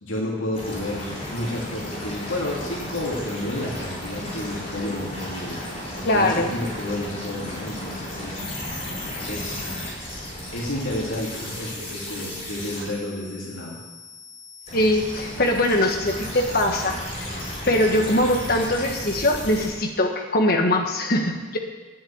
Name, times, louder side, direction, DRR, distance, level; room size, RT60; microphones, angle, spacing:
voice 1, 0.0-5.6 6.0-8.4 9.3-10.0 10.5-13.8, left 1 dB, 85° left, -3 dB, 3.0 m, -31 dB
sound 1, 0.5-19.7, left 1 dB, 30° left, 4.6 m, -34 dB
voice 2, 6.0-6.5 14.7-17.0 17.7-21.6, left 1 dB, 50° left, 3 dB, 1.5 m, -22 dB
10.5 x 7.4 x 8.8 m, 1.3 s
head